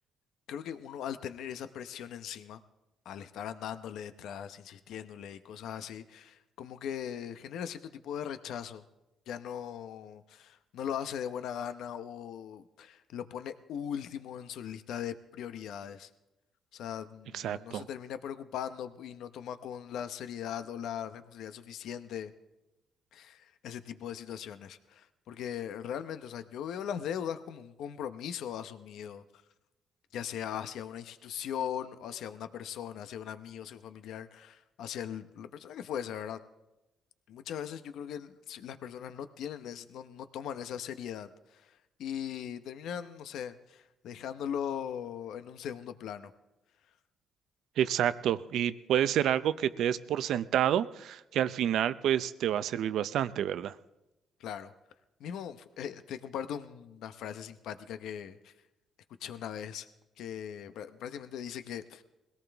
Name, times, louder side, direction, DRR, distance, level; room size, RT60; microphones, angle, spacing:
voice 1, 0.5-2.6 3.0-8.8 9.3-16.1 16.7-22.3 23.1-29.2 30.1-36.4 37.3-41.6 42.0-46.3 54.4-54.7 55.2-58.5 59.2-59.9 60.2-62.0, left 9 dB, 80° left, 11 dB, 0.8 m, -39 dB
voice 2, 17.3-17.9 47.8-53.7, right 10 dB, 75° right, 14 dB, 0.6 m, -29 dB
21.5 x 17.5 x 3.5 m, 0.99 s
cardioid pair, 90°, 0 cm